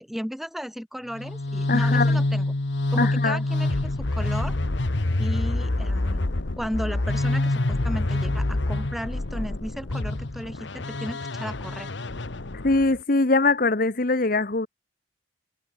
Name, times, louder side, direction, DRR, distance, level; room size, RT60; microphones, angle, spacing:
voice 1, 0.0-2.5 2.9-4.6 5.2-11.9, equal, ahead, 3.6 m, -35 dB
sound 1, 1.1-13.0, left 2 dB, 70° left, 1.2 m, -26 dB
voice 2, 1.7-2.1 3.0-3.4 12.6-14.7, left 3 dB, 45° left, 1.1 m, -22 dB
head